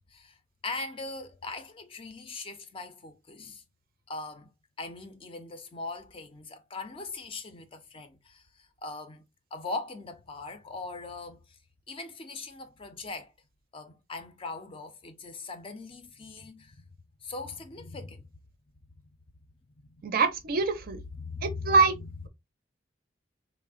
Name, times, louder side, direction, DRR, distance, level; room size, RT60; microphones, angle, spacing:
voice 1, 0.6-3.6 4.1-4.5 4.8-9.2 9.5-11.6 11.9-13.3 13.7-16.8 17.2-18.3 19.8-20.2 21.2-22.1, left 3 dB, 30° left, 0.4 m, -40 dB
voice 2, 20.0-21.0 21.4-21.9, right 4 dB, 50° right, 0.5 m, -24 dB
3.3 x 2.0 x 2.3 m
head